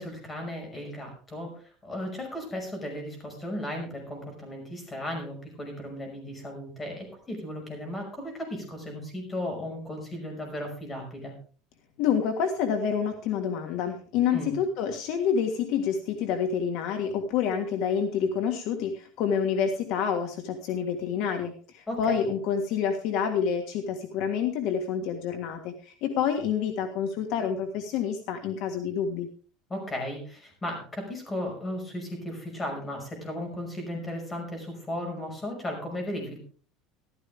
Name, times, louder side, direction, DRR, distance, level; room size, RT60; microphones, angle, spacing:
voice 1, 0.0-11.3 14.3-14.5 21.9-22.2 29.7-36.4, left 1 dB, 15° left, 2 dB, 5.6 m, -35 dB
voice 2, 12.0-29.3, left 7 dB, 55° left, 5 dB, 1.6 m, -28 dB
14.0 x 13.0 x 3.5 m, 0.41 s
cardioid pair, 150°, 0 cm